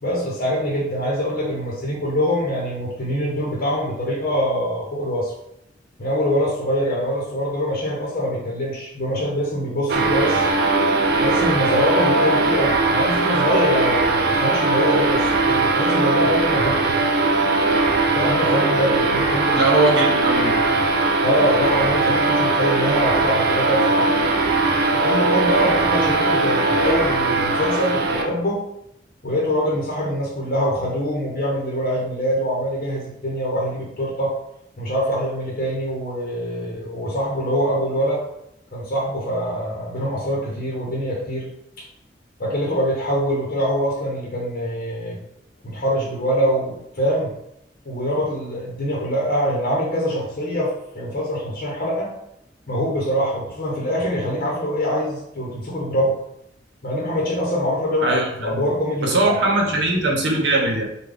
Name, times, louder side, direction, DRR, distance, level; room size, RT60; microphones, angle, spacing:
voice 1, 0.0-5.3 6.0-10.4 11.2-17.0 18.1-19.8 21.2-24.1 24.9-28.6 29.2-34.3 34.8-38.2 38.7-41.5 42.4-45.2 45.6-47.3 47.9-52.1 52.7-56.2 56.8-58.2 58.4-59.4, equal, 55° left, -3 dB, 0.8 m, -24 dB
sound 1, 9.9-28.3, right 3 dB, 60° right, 0.4 m, -19 dB
voice 2, 19.5-20.6 58.0-58.6 59.0-60.8, right 2 dB, 80° right, 0 dB, 0.8 m, -20 dB
3.5 x 2.2 x 3.4 m, 0.80 s
head